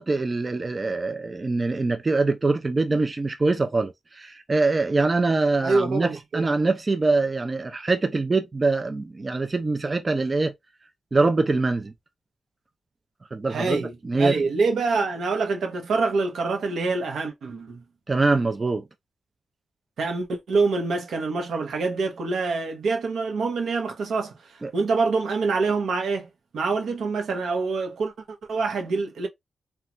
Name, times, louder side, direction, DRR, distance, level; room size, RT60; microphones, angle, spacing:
voice 1, 0.0-10.5 11.1-11.9 13.3-13.8 14.0-14.4 18.1-18.8 24.6-24.7, right 3 dB, 30° right, 0.4 m, -23 dB
voice 2, 5.6-6.4 13.5-17.8 20.0-26.3 26.5-29.3, right 4 dB, 80° right, 0.8 m, -26 dB
3.0 x 2.3 x 2.4 m
cardioid pair, 95°, 0 cm